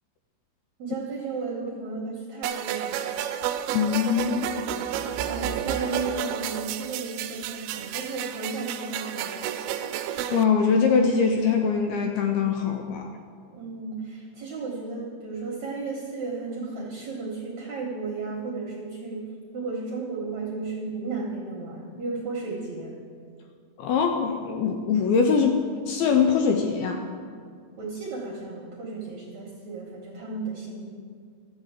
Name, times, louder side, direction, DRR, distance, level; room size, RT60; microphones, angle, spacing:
voice 1, 0.8-3.2 5.2-9.5 13.5-19.3 19.5-23.0 27.8-30.8, right 4 dB, 65° right, -2 dB, 1.9 m, -34 dB
sound 1, 2.4-10.4, right 10 dB, 85° right, 2.2 m, -31 dB
voice 2, 3.7-4.5 10.3-13.1 23.8-27.0, left 6 dB, 80° left, 4 dB, 2.3 m, -23 dB
12.5 x 8.1 x 7.3 m, 2.1 s
omnidirectional pair, 5.1 m